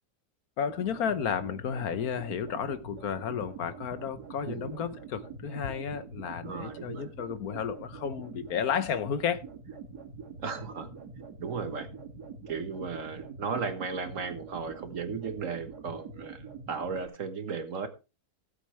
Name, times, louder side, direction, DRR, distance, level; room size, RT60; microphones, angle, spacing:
voice 1, 0.6-9.4, left 7 dB, 70° left, 1.3 m, -32 dB
sound 1, 0.7-17.1, right 4 dB, 75° right, 2.8 m, -44 dB
voice 2, 6.4-7.1 10.4-10.9 11.4-11.9 12.5-17.9, right 5 dB, 55° right, 1.5 m, -35 dB
17.0 x 7.8 x 3.2 m
omnidirectional pair, 1.7 m